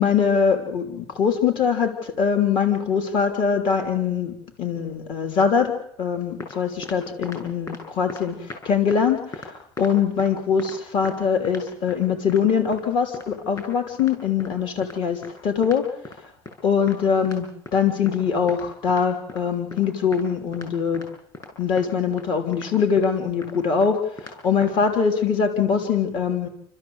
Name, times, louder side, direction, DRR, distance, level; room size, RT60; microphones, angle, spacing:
voice 1, 0.0-9.5 9.8-15.9 16.6-21.0 21.6-24.0 24.4-26.5, left 6 dB, 50° left, 5 dB, 3.3 m, -22 dB
sound 1, 6.1-6.6 6.8-7.4 7.7-7.8 8.1-8.6 8.9-9.0 9.3-10.3 10.6-10.7 11.0-11.2 11.4-12.0 12.3-12.4 12.7-12.8 13.1-13.3 13.6-13.7 14.0-14.1 14.4-14.5 14.8-15.0 15.2-15.3 15.6-16.2 16.4-16.6 16.9-17.0 17.2-17.4 17.7-18.2 18.5-19.4 19.7-19.8 20.1-20.3 20.5-20.7 20.9-21.1 21.3-21.5 21.8-21.9 22.2-22.3 22.5-22.7 23.0-23.1 23.4-23.5 23.8-23.9 24.2-24.4 24.6-24.7, left 3 dB, 30° left, 7.7 m, -38 dB
30.0 x 13.5 x 8.0 m, 0.72 s
cardioid pair, 135°, 10 cm